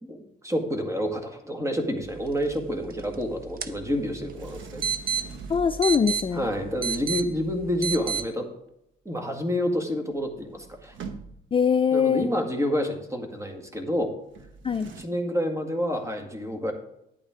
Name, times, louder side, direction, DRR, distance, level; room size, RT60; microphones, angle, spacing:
voice 1, 0.0-4.8 6.3-8.5 9.1-11.0 11.9-14.1 14.8-16.7, equal, 15° right, 4 dB, 1.9 m, -29 dB
sound 1, 2.0-8.3, right 7 dB, 45° right, 0.8 m, -33 dB
Sliding door, 4.3-6.3 9.8-9.9 10.1-11.7 14.3-15.0, right 5 dB, 75° right, 1.1 m, -43 dB
voice 2, 5.5-6.5 11.5-12.3 14.6-14.9, left 6 dB, 25° left, 9 dB, 0.4 m, -22 dB
10.5 x 8.7 x 3.7 m, 0.78 s
cardioid pair, 90°, 20 cm